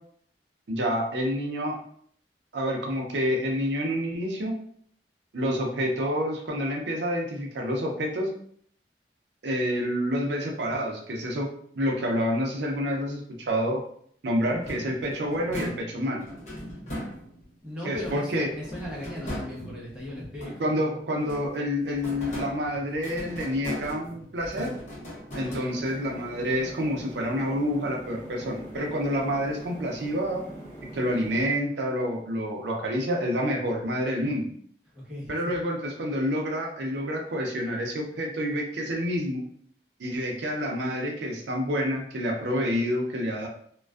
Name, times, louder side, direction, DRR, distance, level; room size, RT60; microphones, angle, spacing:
voice 1, 0.7-1.8 2.5-4.5 5.3-8.3 9.4-11.5 11.8-13.8 14.2-16.3 17.8-18.5 20.6-24.7 25.3-30.4 30.9-34.5 35.3-39.4 40.0-43.5, equal, 75° right, 0 dB, 0.5 m, -28 dB
sound 1, 14.5-17.6 18.0-20.8 21.2-26.1, equal, 40° left, 0.7 m, -39 dB
voice 2, 17.6-21.0 25.4-25.8 34.9-35.6, left 1 dB, 5° right, -6 dB, 0.7 m, -37 dB
sound 2, 25.7-31.5, right 1 dB, 15° left, 0.9 m, -43 dB
2.4 x 2.2 x 2.3 m, 0.62 s
head